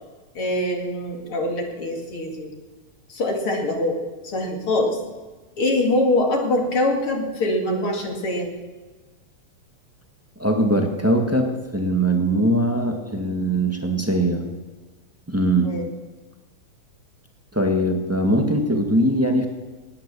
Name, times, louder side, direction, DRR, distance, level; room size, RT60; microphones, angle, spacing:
voice 1, 0.3-2.5 3.1-4.0 4.2-5.0 5.6-8.5 15.6-15.9, left 1 dB, 50° left, 2 dB, 3.0 m, -23 dB
voice 2, 10.4-11.5 11.7-14.5 15.3-15.7 17.5-19.5, right 1 dB, 10° right, 3 dB, 0.6 m, -21 dB
18.0 x 10.0 x 6.9 m, 1.2 s
omnidirectional pair, 3.3 m